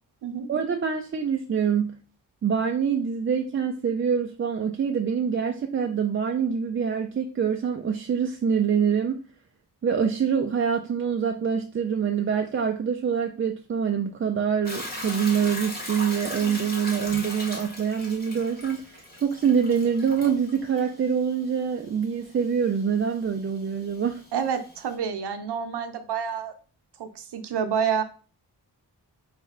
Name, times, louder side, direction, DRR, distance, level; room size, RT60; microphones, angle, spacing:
voice 1, 0.5-2.0 2.4-9.2 9.8-24.2, right 7 dB, 35° right, 3 dB, 0.4 m, -25 dB
Hiss / Toilet flush / Trickle dribble, 14.6-24.9, left 1 dB, 25° left, 1.3 m, -39 dB
voice 2, 24.3-26.5 27.0-28.0, right 7 dB, 75° right, 8 dB, 0.8 m, -28 dB
4.3 x 3.2 x 3.6 m, 0.36 s
wide cardioid pair, 130°, 41 cm